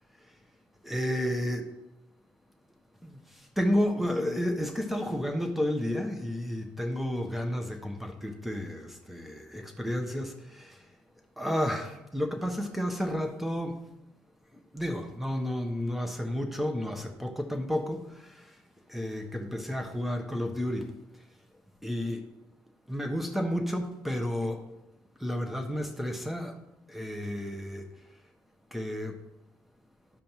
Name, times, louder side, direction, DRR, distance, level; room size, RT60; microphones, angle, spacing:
voice 1, 0.8-1.7 3.0-3.2 3.6-10.8 11.4-13.8 14.7-18.4 18.9-20.9 21.8-22.2 22.9-24.6 25.2-26.6 26.9-27.9 28.7-29.2, equal, ahead, 4 dB, 1.4 m, -31 dB
12.5 x 5.1 x 3.0 m, 0.92 s
supercardioid pair, 55°, 9 cm